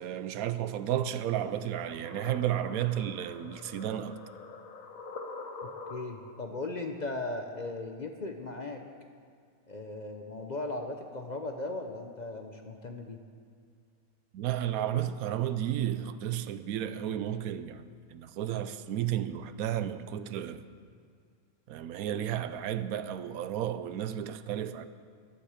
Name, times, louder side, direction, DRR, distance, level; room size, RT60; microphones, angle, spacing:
voice 1, 0.0-4.2 14.3-17.8 18.1-20.6 21.7-24.9, right 11 dB, 85° right, 1.1 m, -32 dB
sound 1, 1.3-6.4, left 3 dB, 70° left, 1.4 m, -45 dB
voice 2, 5.6-8.8 9.7-13.2, left 2 dB, 40° left, 0.7 m, -37 dB
14.0 x 11.5 x 5.0 m
omnidirectional pair, 1.5 m